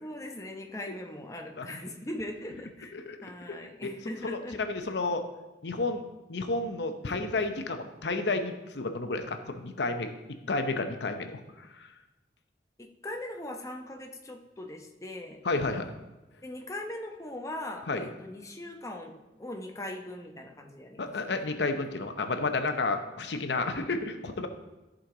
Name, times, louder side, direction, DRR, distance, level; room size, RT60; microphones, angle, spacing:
voice 1, 0.0-2.9 3.2-4.6 7.0-7.3 12.8-15.4 16.4-21.5, left 1 dB, 20° left, 3 dB, 0.8 m, -40 dB
voice 2, 2.9-3.9 4.2-5.2 5.6-6.0 6.3-10.1 10.5-11.9 15.4-15.9 17.9-18.1 21.0-24.5, left 3 dB, 75° left, 7 dB, 0.7 m, -31 dB
14.0 x 5.1 x 3.8 m, 1.1 s
head